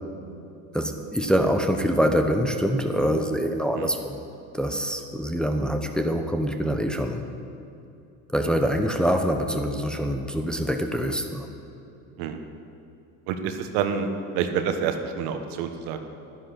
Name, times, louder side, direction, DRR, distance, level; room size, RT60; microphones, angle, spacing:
voice 1, 0.7-4.2 4.5-7.2 8.3-11.5, equal, ahead, 4 dB, 0.9 m, -25 dB
voice 2, 13.3-14.1 14.3-16.1, right 7 dB, 75° right, 7 dB, 1.3 m, -28 dB
11.5 x 10.0 x 6.1 m, 2.7 s
supercardioid pair, 95°, 40 cm